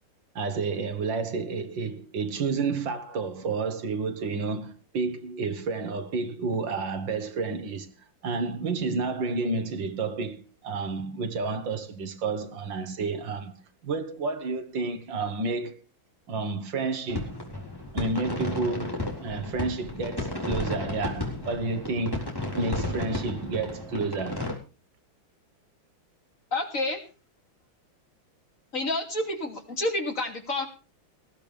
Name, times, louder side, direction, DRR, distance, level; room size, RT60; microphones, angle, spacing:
voice 1, 0.4-7.9 8.2-15.8 16.3-17.4 17.9-22.3 22.6-24.5, right 4 dB, 75° right, 2.0 m, -30 dB
sound 1, 17.1-24.6, left 1 dB, 10° left, 3.8 m, -33 dB
voice 2, 26.5-27.0 28.7-30.7, left 2 dB, 40° left, 3.2 m, -29 dB
19.5 x 14.0 x 3.4 m
omnidirectional pair, 2.1 m